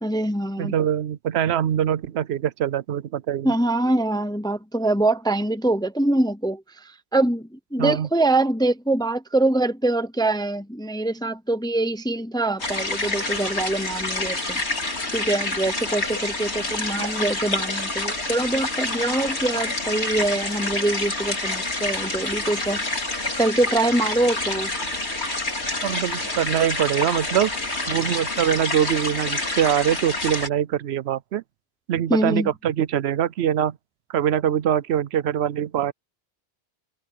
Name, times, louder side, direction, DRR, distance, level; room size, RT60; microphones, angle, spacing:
voice 1, 0.0-0.7 3.4-14.6 15.1-24.7 32.1-32.5, right 2 dB, 5° left, 0.5 m, -24 dB
voice 2, 0.6-3.5 7.8-8.1 25.8-27.5 27.9-31.4 31.9-33.8 34.1-35.9, right 10 dB, 75° right, 0.8 m, -23 dB
sound 1, 12.6-30.5, left 2 dB, 80° left, 3.8 m, -28 dB
omnidirectional pair, 1.1 m